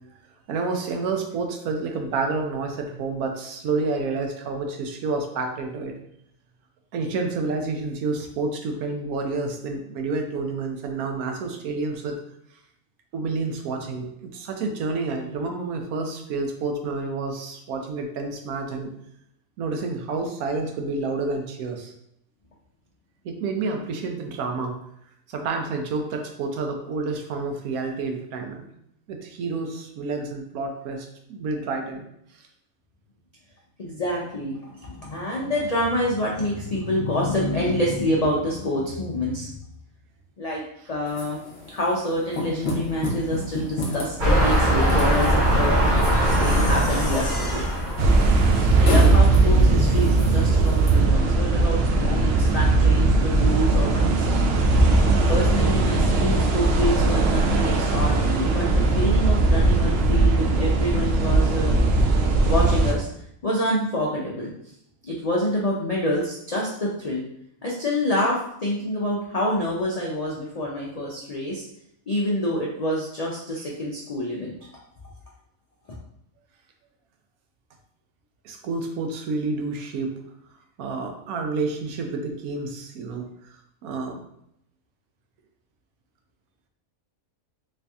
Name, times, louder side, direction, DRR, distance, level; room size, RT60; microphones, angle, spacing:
voice 1, 0.5-5.9 6.9-12.1 13.1-18.9 19.6-21.9 23.2-24.7 25.3-28.6 29.1-32.0 48.6-48.8 61.1-61.2 78.4-80.2 80.8-83.6 83.8-84.2, right 3 dB, 85° right, 3 dB, 1.1 m, -29 dB
voice 2, 33.8-39.5 40.4-41.4 41.7-45.8 46.3-47.7 48.7-54.3 55.3-61.8 62.5-63.1 63.4-64.5 65.0-67.2 67.6-71.6 72.1-74.5, left 1 dB, 80° left, -4 dB, 0.3 m, -27 dB
sound 1, 41.1-50.9, left 2 dB, 50° left, 1.0 m, -33 dB
sound 2, 44.2-49.2 49.8-49.9, equal, 35° right, 1.2 m, -21 dB
sound 3, 48.0-62.9, right 3 dB, 65° right, 0.6 m, -19 dB
3.2 x 2.7 x 3.4 m, 0.75 s
omnidirectional pair, 1.5 m